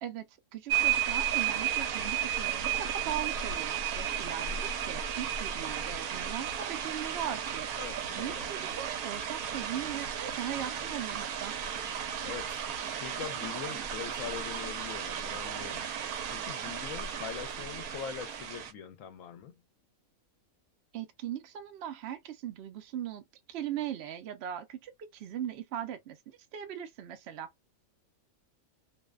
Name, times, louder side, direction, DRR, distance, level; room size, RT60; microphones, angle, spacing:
voice 1, 0.0-7.7 8.2-11.5 20.9-23.2 23.5-27.7, right 10 dB, 65° right, 0.7 m, -39 dB
sound 1, 0.7-18.7, right 9 dB, 85° right, 1.0 m, -34 dB
voice 2, 7.8-8.5 12.2-15.9 16.3-19.6, left 8 dB, 70° left, 0.9 m, -43 dB
2.6 x 2.1 x 2.3 m
omnidirectional pair, 1.5 m